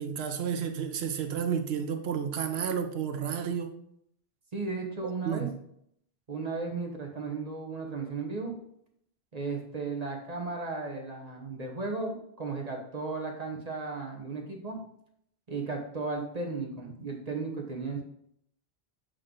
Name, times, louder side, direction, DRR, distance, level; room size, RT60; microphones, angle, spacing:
voice 1, 0.0-3.8 5.0-5.5, right 7 dB, 75° right, 0.9 m, -31 dB
voice 2, 4.5-5.5 6.3-8.6 9.3-14.8 15.5-18.0, right 3 dB, 40° right, 1.1 m, -35 dB
7.6 x 3.2 x 3.9 m
omnidirectional pair, 1.1 m